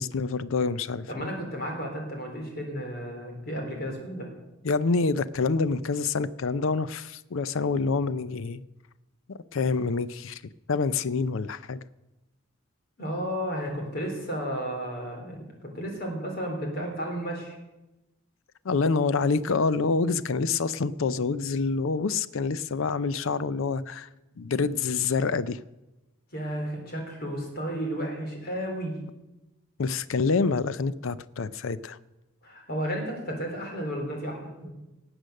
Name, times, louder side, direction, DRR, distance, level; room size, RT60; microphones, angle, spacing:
voice 1, 0.0-1.3 4.6-8.6 9.5-10.4 10.7-11.8 18.6-24.1 24.4-25.6 29.8-32.0, left 4 dB, 70° left, 16 dB, 0.5 m, -27 dB
voice 2, 1.1-4.3 13.0-17.6 26.3-29.0 32.4-34.7, equal, 45° left, 2 dB, 3.5 m, -33 dB
18.5 x 7.9 x 6.5 m, 1.0 s
head